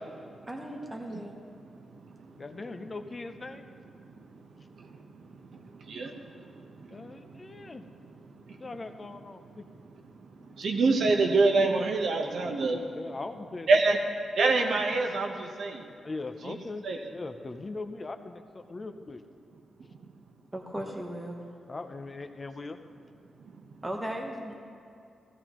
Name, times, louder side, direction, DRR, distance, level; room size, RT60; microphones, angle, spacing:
voice 1, 0.5-1.4 20.5-21.5 23.8-24.6, right 1 dB, 10° right, 1 dB, 0.9 m, -37 dB
voice 2, 2.4-3.7 6.9-7.8 8.6-9.6 12.5-14.0 16.0-16.8 17.1-18.4 18.7-19.2 21.7-22.8, left 3 dB, 25° left, 7 dB, 0.5 m, -40 dB
voice 3, 10.6-12.8 13.7-14.0 14.4-15.8 16.4-16.5 16.8-17.0, right 3 dB, 60° right, 2 dB, 0.9 m, -24 dB
16.0 x 14.0 x 3.0 m, 2.6 s
wide cardioid pair, 170°, 0 cm